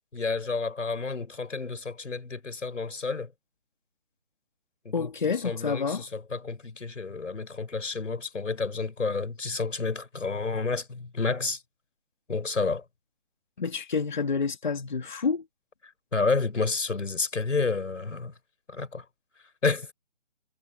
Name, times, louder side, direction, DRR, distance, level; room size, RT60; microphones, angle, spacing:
voice 1, 0.1-3.3 4.8-5.1 5.4-11.6 12.3-12.8 16.1-18.3 18.7-19.0 19.6-19.9, left 4 dB, 90° left, 5.0 m, -30 dB
voice 2, 4.9-6.0 13.6-15.4, left 5 dB, 40° left, 2.4 m, -28 dB
hypercardioid pair, 180°, 36 cm